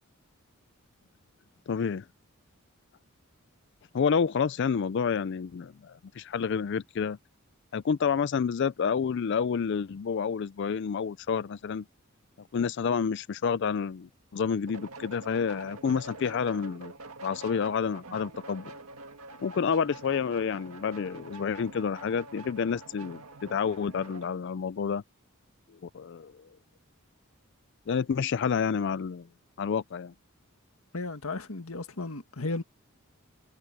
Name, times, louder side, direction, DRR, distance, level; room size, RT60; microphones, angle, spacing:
voice 1, 1.7-2.1 3.9-7.2 7.7-11.8 12.5-16.9 17.2-18.7 19.4-25.0 25.8-26.4 27.9-29.3 29.6-30.1, left 6 dB, 55° left, 0.4 m, -29 dB
sound 1, 14.7-24.3, right 2 dB, 90° right, 1.9 m, -46 dB
voice 2, 30.9-32.6, left 3 dB, 80° left, 1.7 m, -34 dB
head